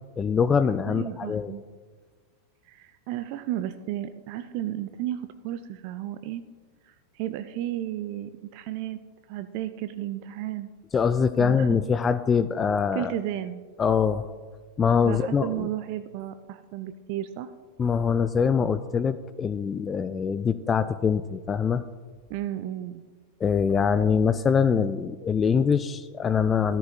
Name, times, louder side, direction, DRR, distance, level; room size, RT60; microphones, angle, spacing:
voice 1, 0.2-1.5 10.9-13.1 13.8-14.3 14.8-15.7 17.8-21.8 23.4-26.8, left 6 dB, 20° left, 13 dB, 0.3 m, -23 dB
voice 2, 0.9-1.6 2.7-6.4 6.8-9.0 9.3-10.7 11.4-11.7 12.9-13.6 15.0-17.5 22.3-23.0, right 12 dB, 45° right, 11 dB, 0.4 m, -33 dB
14.0 x 13.0 x 2.3 m, 1.5 s
figure-of-eight pair, 90°, 0 cm